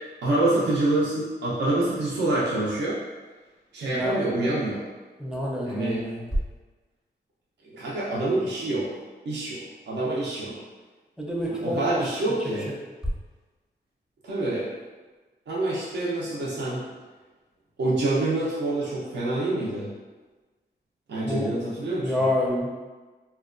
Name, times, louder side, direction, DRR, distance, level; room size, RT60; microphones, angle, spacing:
voice 1, 0.2-3.0 3.7-4.8 5.6-6.0 7.6-8.9 9.2-10.5 11.5-12.7 14.2-14.7 15.5-16.8 17.8-19.9 21.1-22.2, right 2 dB, 75° right, -7 dB, 0.6 m, -26 dB
voice 2, 3.9-4.2 5.2-6.3 11.2-12.0 21.3-21.5 22.0-22.7, left 1 dB, 5° right, -3 dB, 0.5 m, -27 dB
2.8 x 2.2 x 2.4 m, 1.3 s
wide cardioid pair, 100°, 18 cm